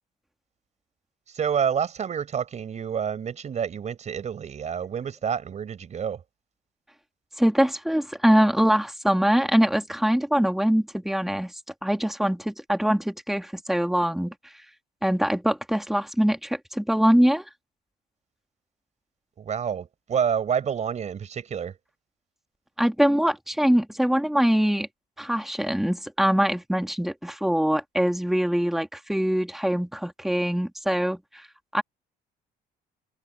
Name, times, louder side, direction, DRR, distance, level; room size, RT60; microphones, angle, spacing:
voice 1, 1.3-6.2 19.4-21.7, right 7 dB, 45° right, 4.8 m, -28 dB
voice 2, 7.4-11.5 11.8-14.3 15.0-17.4 22.8-24.9 25.2-31.5 31.7-31.8, equal, ahead, 2.8 m, -23 dB
cardioid pair, 110°, 17 cm